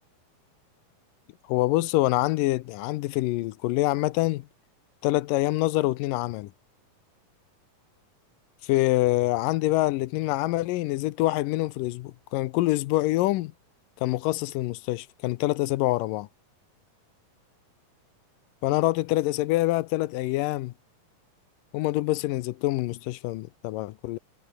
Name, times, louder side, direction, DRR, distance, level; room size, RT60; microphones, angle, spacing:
voice 1, 1.5-4.5 5.0-6.5 8.6-13.5 14.0-16.3 18.6-20.7 21.7-24.2, left 18 dB, 80° left, 2.2 m, -25 dB
omnidirectional pair, 4.1 m